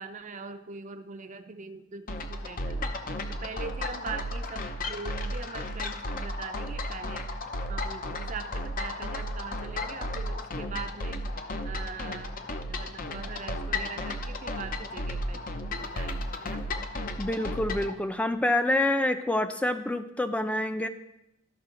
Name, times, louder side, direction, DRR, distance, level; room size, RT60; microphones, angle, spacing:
voice 1, 0.0-2.9 3.3-7.4 7.7-11.2 11.6-16.6, right 4 dB, 40° right, 7 dB, 0.6 m, -42 dB
sound 1, 2.1-17.9, left 1 dB, 45° left, 0.7 m, -34 dB
voice 2, 17.2-20.9, left 1 dB, 5° left, 9 dB, 0.5 m, -27 dB
13.5 x 5.6 x 3.8 m, 0.87 s
head